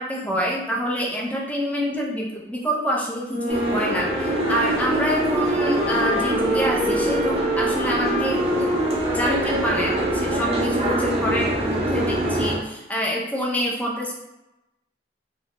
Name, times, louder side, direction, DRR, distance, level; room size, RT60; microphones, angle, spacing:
voice 1, 0.0-8.8 9.1-14.1, equal, 10° left, -2 dB, 0.4 m, -26 dB
Wind instrument woodwind instrument, 3.2-11.6, equal, 80° right, 0.8 m, -28 dB
Boat Water vehicle, 3.5-12.6, right 1 dB, 35° right, 0.6 m, -25 dB
2.7 x 2.1 x 2.9 m, 0.97 s
head